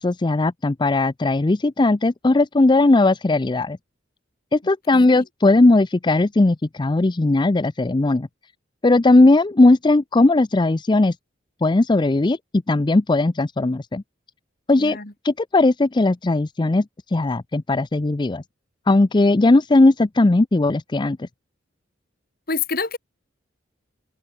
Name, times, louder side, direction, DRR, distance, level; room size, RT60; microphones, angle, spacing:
voice 1, 0.0-3.8 4.5-8.3 8.8-11.1 11.6-12.4 12.7-14.0 14.7-15.0 15.2-16.8 17.1-18.4 18.9-21.3, left 2 dB, 25° left, 0.5 m, -18 dB
voice 2, 4.9-5.2 14.8-15.1 22.5-23.0, left 4 dB, 50° left, 5.0 m, -27 dB
head